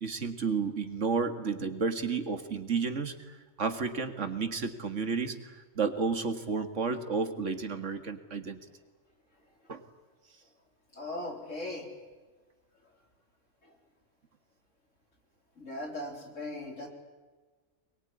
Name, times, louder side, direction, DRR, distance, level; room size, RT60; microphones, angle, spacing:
voice 1, 0.0-8.6 9.7-9.8, right 5 dB, 80° right, 8 dB, 2.3 m, -32 dB
voice 2, 11.0-11.8 15.6-16.9, left 1 dB, 85° left, 3 dB, 4.5 m, -38 dB
23.5 x 21.5 x 9.8 m, 1.4 s
omnidirectional pair, 1.3 m